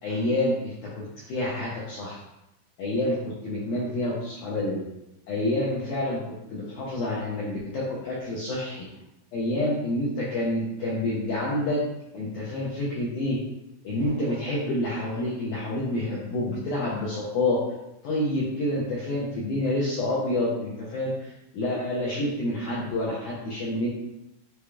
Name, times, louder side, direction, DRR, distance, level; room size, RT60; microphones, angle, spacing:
voice 1, 0.0-2.2 2.8-4.8 5.3-8.8 9.3-11.8 12.1-13.4 13.8-17.6 18.0-23.9, left 1 dB, 75° left, -6 dB, 1.8 m, -28 dB
6.8 x 3.0 x 2.3 m, 0.91 s
omnidirectional pair, 4.3 m